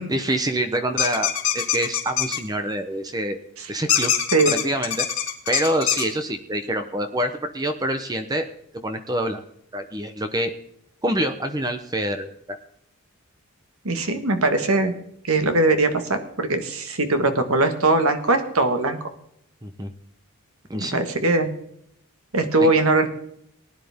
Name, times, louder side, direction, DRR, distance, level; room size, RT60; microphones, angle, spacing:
voice 1, 0.1-3.4 3.7-4.1 4.5-5.1 5.5-8.5 8.7-9.4 9.7-10.5 11.0-12.6 19.6-19.9 20.7-21.0 22.6-22.7, right 1 dB, 15° right, 8 dB, 0.8 m, -26 dB
sound 1, 1.0-2.4 3.9-6.0, left 10 dB, 65° left, 2.7 m, -23 dB
voice 2, 13.8-14.9 15.3-19.0 20.9-21.5 22.3-23.1, right 2 dB, 75° right, 7 dB, 1.6 m, -20 dB
19.5 x 10.0 x 3.6 m, 0.72 s
head